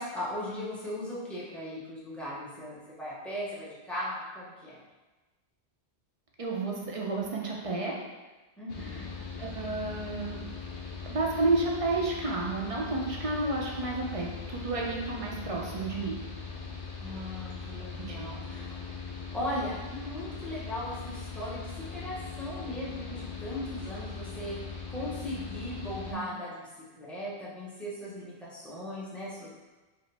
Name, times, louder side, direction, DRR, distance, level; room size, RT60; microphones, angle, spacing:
voice 1, 0.0-4.8 8.6-9.1 17.0-18.8 19.3-24.6 24.9-26.7 27.0-29.5, left 1 dB, ahead, -8 dB, 0.8 m, -38 dB
voice 2, 6.4-8.0 9.4-10.4 11.1-16.2 18.0-18.2 26.0-26.2, right 2 dB, 40° right, -2 dB, 0.5 m, -31 dB
Mechanical fan, 8.7-26.1, left 4 dB, 60° left, 0.7 m, -40 dB
4.9 x 2.0 x 3.3 m, 1.2 s
omnidirectional pair, 1.1 m